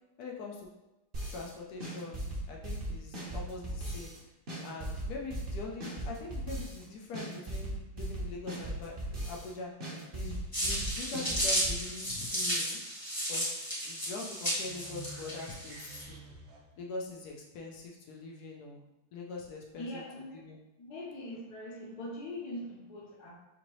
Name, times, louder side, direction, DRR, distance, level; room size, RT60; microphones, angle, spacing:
voice 1, 0.2-0.7 1.3-4.1 4.6-9.7 10.1-12.8 13.3-16.2 16.8-18.8 19.1-20.6, left 3 dB, 85° left, -1 dB, 0.8 m, -43 dB
sound 1, 1.1-1.5 1.8-4.2 4.5-6.8 7.1-9.5 9.8-11.8, right 1 dB, 45° right, 0.7 m, -38 dB
sound 2, 10.5-16.0, equal, 15° left, 0.7 m, -33 dB
sound 3, 14.6-16.9, right 4 dB, 75° right, 1.5 m, -49 dB
voice 2, 19.8-20.4 20.8-23.3, left 1 dB, 65° left, -2 dB, 1.1 m, -42 dB
5.8 x 2.7 x 3.0 m, 0.97 s
omnidirectional pair, 2.4 m